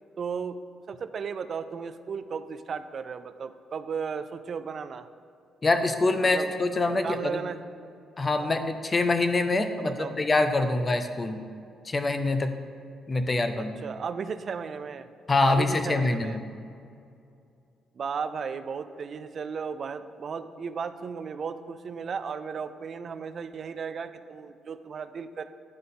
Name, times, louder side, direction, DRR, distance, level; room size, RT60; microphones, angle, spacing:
voice 1, 0.2-0.6 0.9-5.1 6.2-6.5 6.8-7.6 8.4-8.5 9.8-10.2 13.6-15.1 15.5-16.4 18.0-25.5, right 6 dB, 45° right, 11 dB, 0.3 m, -35 dB
voice 2, 5.6-7.4 8.2-11.4 11.8-12.6 13.1-13.7 15.3-16.4, left 2 dB, 25° left, 8 dB, 0.5 m, -25 dB
10.0 x 3.9 x 3.7 m, 2.4 s
cardioid pair, 140°, 0 cm